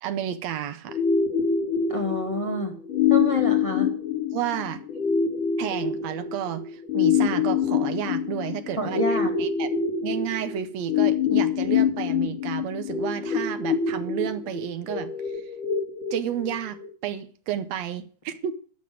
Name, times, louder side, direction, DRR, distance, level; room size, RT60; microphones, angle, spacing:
voice 1, 0.0-1.0 4.3-4.8 5.6-9.7 10.0-15.4 16.1-18.5, right 10 dB, 70° right, 11 dB, 1.8 m, -31 dB
sound 1, 0.9-16.9, left 7 dB, 85° left, 3.3 m, -26 dB
voice 2, 1.9-2.7 3.1-3.9 8.8-9.3, left 1 dB, 15° left, 2 dB, 1.1 m, -28 dB
13.0 x 5.6 x 7.8 m, 0.42 s
omnidirectional pair, 3.6 m